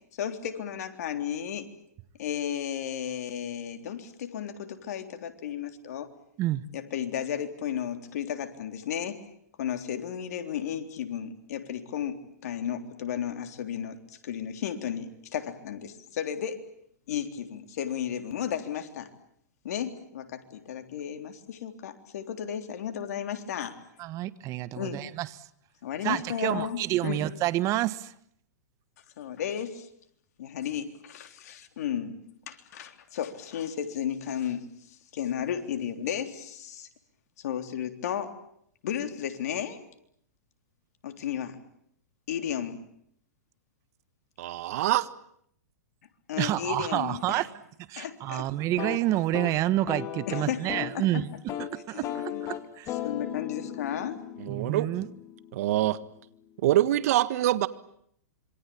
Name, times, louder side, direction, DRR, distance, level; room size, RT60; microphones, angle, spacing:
voice 1, 0.2-1.7 2.2-6.1 6.7-9.2 9.6-16.6 17.1-19.1 19.6-23.7 24.7-25.0 25.8-27.2 29.2-29.9 30.4-32.2 32.5-34.6 35.1-36.9 37.4-38.4 38.8-39.8 41.0-41.6 42.3-42.8 46.3-47.4 48.0-48.5 50.3-50.7 50.9-51.1 51.9-52.4 53.0-54.2, left 9 dB, 65° left, 7 dB, 3.6 m, -34 dB
voice 2, 24.0-25.5 26.0-28.1 46.4-47.5 47.9-51.3 51.6-52.9 54.5-55.1, right 15 dB, 35° right, 15 dB, 1.4 m, -29 dB
voice 3, 44.4-45.1 54.4-54.9 55.5-56.0 56.6-57.7, right 14 dB, 60° right, 15 dB, 1.6 m, -24 dB
sound 1, 48.6-51.0 51.3-51.7 52.0-55.9, left 11 dB, 35° left, 3.0 m, -37 dB
27.0 x 24.5 x 8.7 m, 0.70 s
hypercardioid pair, 120°, 9 cm